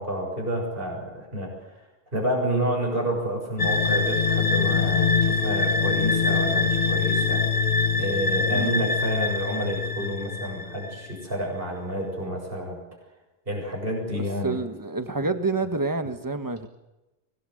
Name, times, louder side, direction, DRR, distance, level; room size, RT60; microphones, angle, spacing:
voice 1, 0.0-1.8 2.1-7.4 7.9-12.8 13.5-14.6, right 1 dB, 65° right, 0 dB, 6.9 m, -29 dB
sound 1, 3.6-11.1, left 4 dB, 65° left, 1.5 m, -24 dB
voice 2, 14.4-16.7, right 3 dB, 20° right, 8 dB, 1.6 m, -28 dB
24.0 x 19.5 x 8.0 m, 1.0 s
omnidirectional pair, 1.0 m